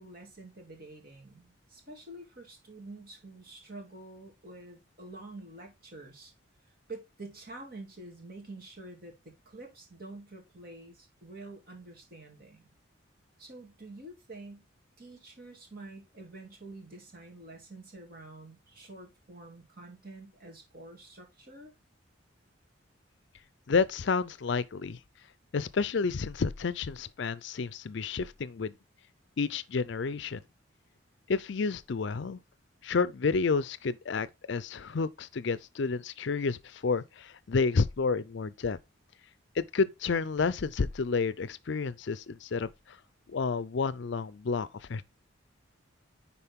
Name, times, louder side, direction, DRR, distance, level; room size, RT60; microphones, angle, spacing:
voice 1, 0.0-6.3 6.9-12.7 13.4-14.6 15.0-21.7, right 2 dB, 45° right, 2.6 m, -47 dB
voice 2, 23.7-25.0 25.5-28.7 29.4-30.4 31.3-32.4 32.8-38.8 39.6-42.7 43.3-45.0, left 4 dB, 60° left, 0.5 m, -30 dB
10.0 x 4.2 x 3.6 m
head